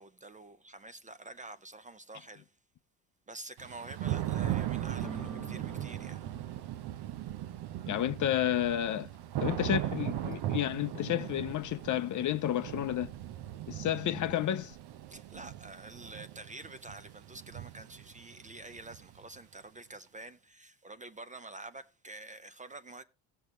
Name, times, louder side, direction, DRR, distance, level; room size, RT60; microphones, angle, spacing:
voice 1, 0.0-2.5 3.3-6.3 15.1-23.0, right 2 dB, 20° right, 0.5 m, -48 dB
Thunder / Rain, 3.6-19.4, right 12 dB, 65° right, 0.8 m, -38 dB
sound 1, 5.0-12.6, right 1 dB, ahead, 1.0 m, -53 dB
voice 2, 7.9-9.1 9.4-13.1 13.7-14.8, left 11 dB, 45° left, 0.6 m, -31 dB
16.5 x 6.7 x 3.1 m
cardioid pair, 120°, 43 cm